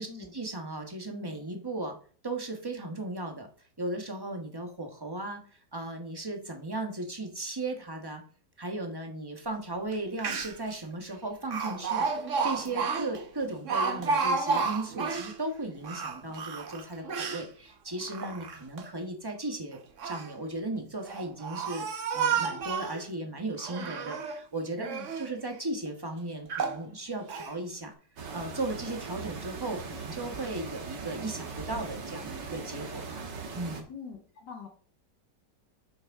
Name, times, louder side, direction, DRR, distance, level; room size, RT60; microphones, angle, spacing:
voice 1, 0.0-2.0 2.2-3.5 3.8-5.4 5.7-8.2 8.6-27.9 28.3-33.9, right 2 dB, 15° right, 3 dB, 1.1 m, -36 dB
Speech, 9.9-10.0 10.2-10.7 11.5-15.3 15.8-17.4 18.0-18.8 19.7-20.3 21.0-23.0 23.6-24.4 24.8-25.3 25.9-26.0 26.5-26.8 27.3-27.5, right 5 dB, 50° right, 1.2 m, -31 dB
voice 2, 24.8-25.1 33.9-34.7, left 6 dB, 80° left, 1 dB, 2.2 m, -44 dB
sound 1, 28.2-33.8, right 4 dB, 80° right, 2.1 m, -40 dB
10.5 x 6.5 x 3.6 m, 0.42 s
omnidirectional pair, 1.9 m